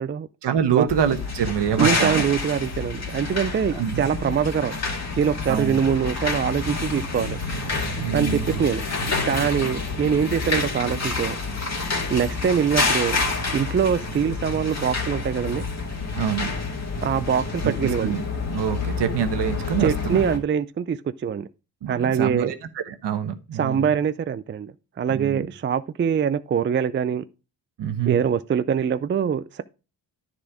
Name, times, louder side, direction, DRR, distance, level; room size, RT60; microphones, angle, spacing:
voice 1, 0.4-2.2 3.7-4.1 5.5-5.8 8.0-8.6 16.1-16.5 17.6-18.2 18.5-20.2 21.8-23.9 25.1-25.5 27.8-28.2, right 8 dB, 65° right, 1.2 m, -26 dB
sound 1, 0.9-20.4, left 3 dB, 35° left, 2.2 m, -28 dB
voice 2, 1.8-4.8 5.2-7.4 8.1-8.8 9.2-11.4 12.1-13.2 13.5-15.6 17.0-18.2 19.8-21.0 21.2-21.5 21.9-22.5 23.5-27.2 28.1-29.6, right 7 dB, 25° right, 0.4 m, -23 dB
10.0 x 4.3 x 4.9 m
supercardioid pair, 60°, 45 cm